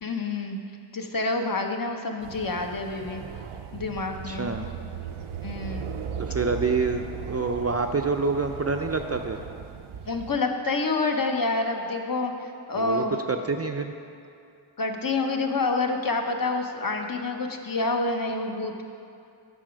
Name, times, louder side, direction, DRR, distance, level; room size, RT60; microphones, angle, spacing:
voice 1, 0.0-0.6 0.9-3.2 3.7-4.5 5.4-5.9 10.1-13.2 14.8-18.8, left 3 dB, 45° left, 3 dB, 0.8 m, -28 dB
sound 1, 2.2-10.4, right 7 dB, 85° right, 0.6 m, -37 dB
voice 2, 4.2-4.7 6.2-9.4 12.7-13.9, right 4 dB, 35° right, 5 dB, 0.4 m, -27 dB
8.8 x 6.2 x 5.1 m, 2.5 s
wide cardioid pair, 60°, 48 cm